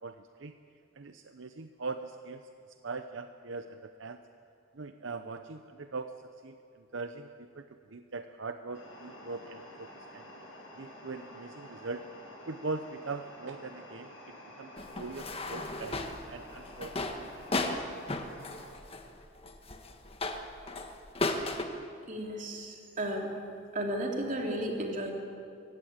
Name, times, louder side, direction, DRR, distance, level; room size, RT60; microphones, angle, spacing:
voice 1, 0.0-0.5 0.9-2.4 2.8-4.2 4.7-6.1 6.4-10.3 10.8-12.0 12.5-16.9 17.2-17.9, right 3 dB, 75° right, 8 dB, 0.8 m, -41 dB
sound 1, 8.7-18.6, equal, 90° left, 7.0 m, -50 dB
sound 2, 14.8-21.6, left 2 dB, 30° left, 1.5 m, -35 dB
voice 2, 22.1-23.3 23.7-25.1, right 1 dB, 45° right, 1 dB, 3.3 m, -34 dB
22.5 x 16.5 x 8.8 m, 2.4 s
head